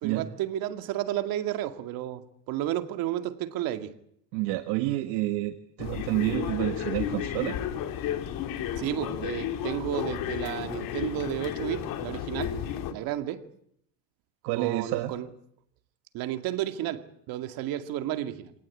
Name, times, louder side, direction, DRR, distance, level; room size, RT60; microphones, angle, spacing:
voice 1, 0.0-3.9 8.8-12.5 12.9-13.4 14.6-15.3 16.1-18.5, right 12 dB, 60° right, 7 dB, 2.3 m, -32 dB
voice 2, 4.3-7.6 14.4-15.1, right 16 dB, 75° right, 7 dB, 1.7 m, -29 dB
sound 1, 5.8-12.9, left 10 dB, 55° left, 3.1 m, -33 dB
26.0 x 19.0 x 8.6 m, 0.72 s
cardioid pair, 130°, 39 cm